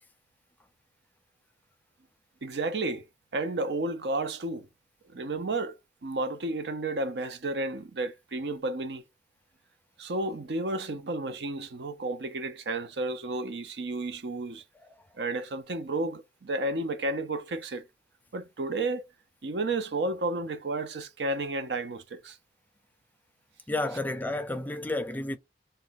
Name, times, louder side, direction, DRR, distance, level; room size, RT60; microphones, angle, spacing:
voice 1, 2.4-3.0 3.3-4.7 5.1-5.8 6.0-9.0 10.0-14.6 15.2-17.9 18.3-19.0 19.4-22.4, right 2 dB, 70° right, 0.6 m, -32 dB
voice 2, 23.7-25.4, left 2 dB, 10° left, 0.4 m, -31 dB
2.5 x 2.2 x 3.9 m
head